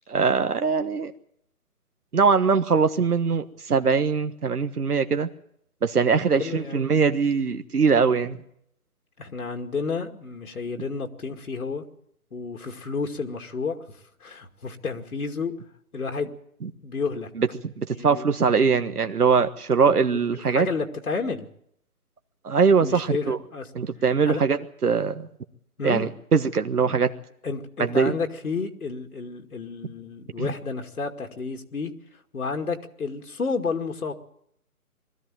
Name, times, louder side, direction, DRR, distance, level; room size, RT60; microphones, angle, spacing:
voice 1, 0.1-1.1 2.1-5.3 5.8-8.4 16.6-16.7 17.4-20.7 22.4-23.4 23.7-25.3 25.8-27.1 27.8-28.1 30.4-30.5, right 5 dB, 80° right, 8 dB, 1.5 m, -22 dB
voice 2, 6.3-6.9 9.2-11.8 12.3-15.5 15.9-16.3 16.8-17.3 17.9-18.5 20.1-20.2 20.5-21.5 22.8-23.7 24.3-24.4 25.8-26.1 27.4-31.9 32.3-34.1, left 4 dB, 75° left, 3 dB, 2.3 m, -31 dB
21.5 x 14.0 x 9.1 m, 0.72 s
hypercardioid pair, 160°, 45 cm